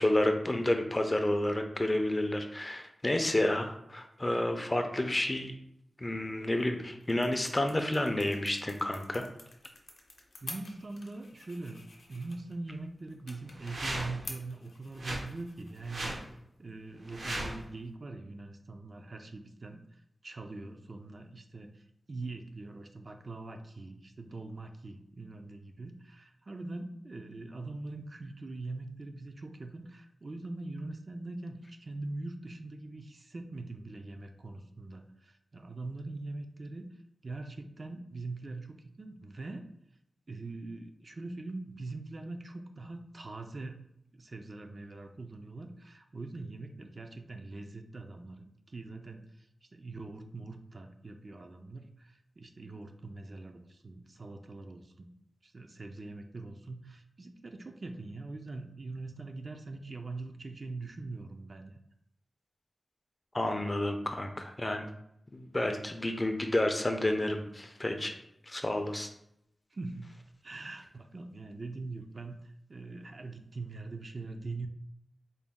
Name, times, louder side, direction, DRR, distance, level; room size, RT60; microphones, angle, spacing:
voice 1, 0.0-5.5 6.0-9.2 63.3-64.9 65.3-68.1 68.5-69.1, left 1 dB, 20° left, 5 dB, 0.4 m, -30 dB
sound 1, 6.4-18.0, left 2 dB, 75° left, 0.6 m, -51 dB
voice 2, 10.4-16.3 16.6-36.9 37.2-39.7 40.3-43.9 44.1-49.5 49.7-55.1 55.4-61.7 69.7-70.1 70.4-74.7, right 3 dB, 45° right, 4 dB, 0.4 m, -42 dB
sound 2, 13.5-14.3 15.0-15.2 15.8-16.2 17.0-17.6, right 1 dB, 90° right, 1.0 m, -37 dB
4.0 x 2.2 x 3.5 m, 0.77 s
wide cardioid pair, 115°, 0 cm